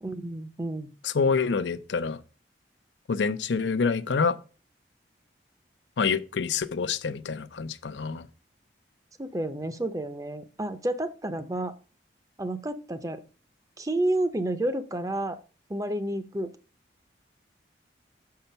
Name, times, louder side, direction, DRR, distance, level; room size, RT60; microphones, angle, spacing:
voice 1, 0.0-0.9 9.2-11.7 12.4-13.2 13.8-15.4 15.7-16.5, right 1 dB, 20° right, 0.6 m, -30 dB
voice 2, 1.0-2.2 3.1-4.4 6.0-8.3, left 5 dB, 85° left, 0.5 m, -27 dB
6.8 x 5.7 x 5.5 m
head